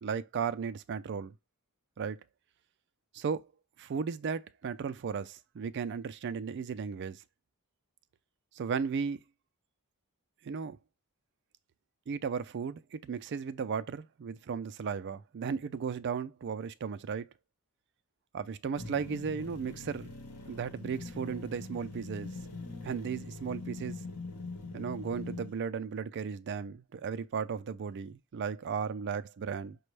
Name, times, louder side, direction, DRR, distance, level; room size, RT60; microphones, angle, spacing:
voice 1, 0.0-1.3 2.0-2.2 3.1-3.5 3.8-7.2 8.6-9.2 10.4-10.8 12.1-17.3 18.3-20.1 20.5-22.3 22.8-24.0 24.7-29.8, right 6 dB, 55° right, 0.4 m, -35 dB
sound 1, 18.8-25.5, left 3 dB, 85° left, 1.0 m, -43 dB
5.1 x 2.3 x 3.2 m
head